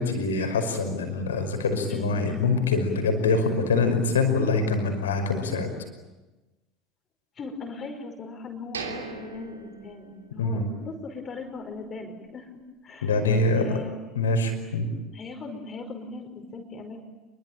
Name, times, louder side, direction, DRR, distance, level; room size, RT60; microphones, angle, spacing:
voice 1, 0.0-5.7 10.4-10.6 13.0-13.8 14.2-14.9, left 3 dB, 80° left, 6 dB, 5.5 m, -24 dB
voice 2, 1.9-2.5 7.3-12.5 12.8-14.0 15.1-17.0, left 3 dB, 35° left, 4 dB, 5.2 m, -39 dB
sound 1, 8.7-10.7 11.0-11.1 11.6-11.8, right 5 dB, 85° right, 3.2 m, -39 dB
28.0 x 23.0 x 9.0 m, 1.1 s
figure-of-eight pair, 70°, 0 cm